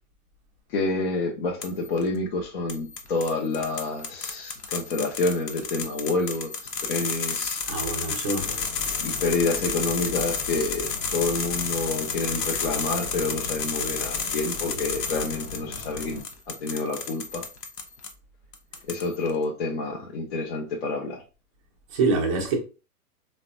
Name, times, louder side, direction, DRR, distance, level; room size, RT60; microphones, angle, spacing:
voice 1, 0.7-7.6 9.0-16.2 16.5-17.5 18.9-21.2, left 3 dB, 40° left, 0.5 m, -28 dB
sound 1, 1.6-2.0 2.7-18.1 18.5-19.3, left 5 dB, 90° left, 0.7 m, -32 dB
voice 2, 7.7-8.5 21.9-22.6, right 3 dB, 20° right, 0.4 m, -25 dB
sound 2, 8.4-16.2, left 4 dB, 60° left, 1.1 m, -40 dB
3.2 x 2.1 x 2.5 m
hypercardioid pair, 140°, 47 cm